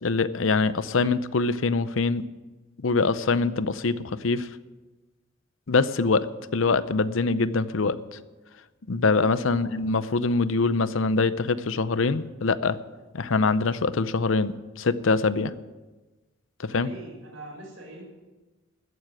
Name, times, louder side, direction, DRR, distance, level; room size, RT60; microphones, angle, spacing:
voice 1, 0.0-2.2 2.8-4.5 5.7-8.2 8.9-12.8 13.1-15.5 16.6-16.9, left 3 dB, 75° left, 15 dB, 0.7 m, -24 dB
voice 2, 16.7-18.0, right 2 dB, 80° right, 0 dB, 5.6 m, -43 dB
14.0 x 9.8 x 7.7 m, 1.2 s
head